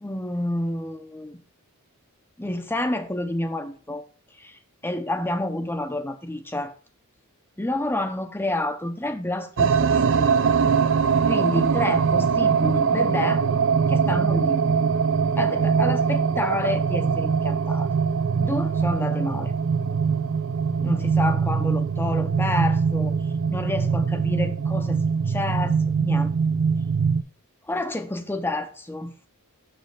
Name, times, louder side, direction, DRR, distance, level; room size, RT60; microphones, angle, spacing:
voice 1, 0.0-1.4 2.4-4.0 4.3-6.7 7.6-10.4 11.2-13.4 13.9-14.6 15.4-17.9 18.4-19.5 20.8-23.2 23.5-26.3 27.6-29.1, left 1 dB, 10° left, 0.5 m, -29 dB
sound 1, 9.6-27.2, right 6 dB, 60° right, 0.4 m, -22 dB
6.4 x 6.2 x 3.4 m
head